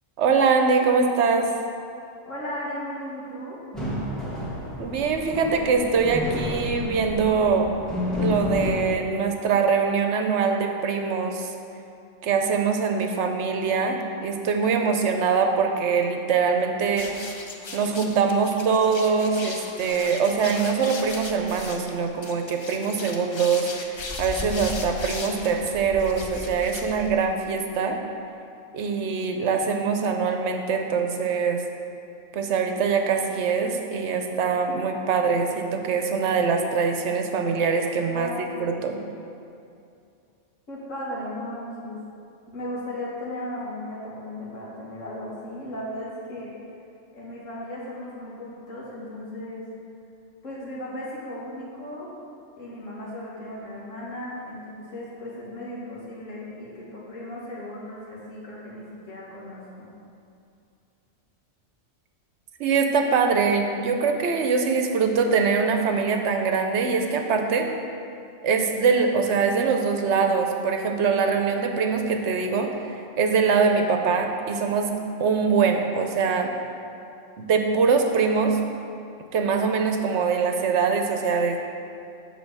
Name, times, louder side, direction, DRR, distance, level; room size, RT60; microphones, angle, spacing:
voice 1, 0.2-1.5 4.8-7.7 8.2-11.5 12.2-17.1 17.7-23.7 24.2-28.0 28.7-31.6 32.3-39.0 62.6-67.7 68.4-74.9 75.2-76.5 77.4-78.6 79.3-81.6, right 5 dB, 70° right, 4 dB, 0.9 m, -23 dB
voice 2, 2.3-3.6 38.1-38.5 40.7-42.0 42.5-46.5 47.1-49.7 50.4-52.1 52.6-59.9, left 1 dB, 90° left, -6 dB, 2.0 m, -36 dB
sound 1, 3.7-8.7, left 2 dB, ahead, 1.4 m, -30 dB
sound 2, 16.9-27.4, left 2 dB, 45° left, 0.3 m, -37 dB
7.5 x 3.9 x 6.1 m, 2.5 s
omnidirectional pair, 1.3 m